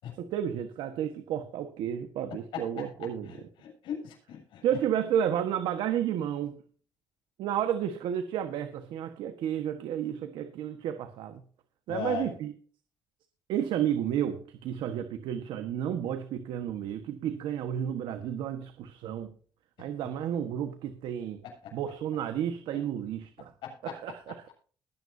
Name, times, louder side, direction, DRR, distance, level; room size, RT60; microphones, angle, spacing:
voice 1, 0.2-3.5 4.6-6.6 7.4-11.4 11.9-12.5 13.5-19.3 19.8-21.4 21.7-23.5 23.8-24.5, right 10 dB, 80° right, 1.4 m, -32 dB
voice 2, 2.5-2.9 3.3-4.6 11.9-12.3 23.6-23.9, left 8 dB, 80° left, 7.3 m, -38 dB
20.5 x 9.5 x 2.7 m
cardioid pair, 110°, 8 cm